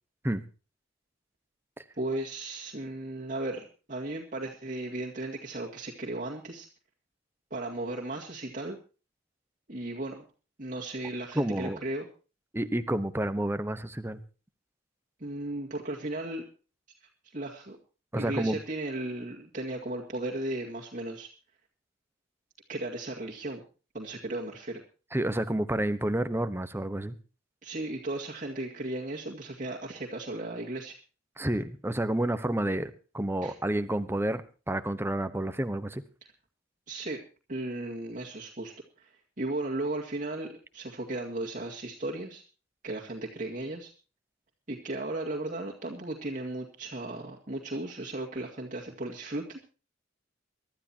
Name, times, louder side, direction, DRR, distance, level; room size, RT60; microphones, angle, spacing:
voice 1, 2.0-6.7 7.5-8.8 9.7-10.2 10.6-12.1 15.2-16.4 17.3-17.8 18.2-21.3 22.7-23.6 23.9-24.8 27.6-31.0 33.4-33.6 36.9-37.2 37.5-39.1 39.4-42.4 42.8-43.9 44.7-49.6, right 2 dB, 45° right, -2 dB, 2.1 m, -35 dB
voice 2, 11.3-11.8 12.5-14.2 18.1-18.6 25.1-27.1 31.4-34.4 34.7-36.0, right 1 dB, 10° right, 11 dB, 1.0 m, -29 dB
24.0 x 12.5 x 2.9 m, 0.34 s
head